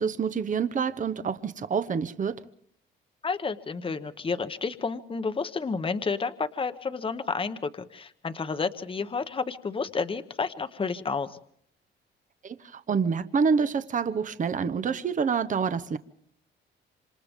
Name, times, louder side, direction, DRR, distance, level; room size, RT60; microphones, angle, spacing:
voice 1, 0.0-2.4 12.4-16.0, right 6 dB, 40° right, 1.0 m, -27 dB
voice 2, 3.2-11.4, left 4 dB, 25° left, 1.1 m, -31 dB
27.0 x 26.5 x 3.7 m
cardioid pair, 90°, 20 cm